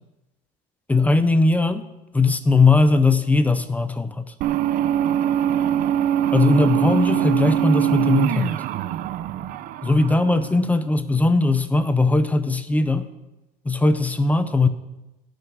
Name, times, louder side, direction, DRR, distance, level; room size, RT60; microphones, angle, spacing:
voice 1, 0.9-4.3 6.3-8.6 9.8-13.1 13.7-14.7, left 3 dB, 10° left, 11 dB, 0.6 m, -19 dB
sound 1, 4.4-10.8, right 11 dB, 55° right, 0.5 m, -23 dB
15.5 x 6.5 x 6.1 m, 0.99 s
cardioid pair, 150°, 17 cm